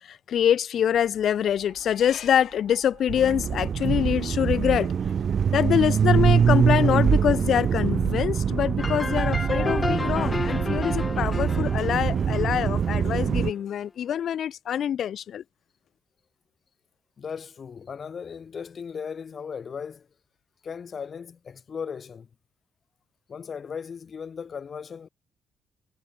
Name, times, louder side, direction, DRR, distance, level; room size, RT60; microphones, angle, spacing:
voice 1, 0.0-4.9 5.5-15.4, left 9 dB, 65° left, 1.0 m, -25 dB
sound 1, 0.8-10.6, right 10 dB, 65° right, 6.6 m, -53 dB
sound 2, 3.1-13.5, right 7 dB, 50° right, 0.8 m, -24 dB
sound 3, 8.8-13.4, left 3 dB, 25° left, 0.4 m, -32 dB
voice 2, 17.2-20.1 20.6-22.3 23.3-25.1, left 6 dB, 45° left, 1.6 m, -37 dB
cardioid pair, 90°, 0 cm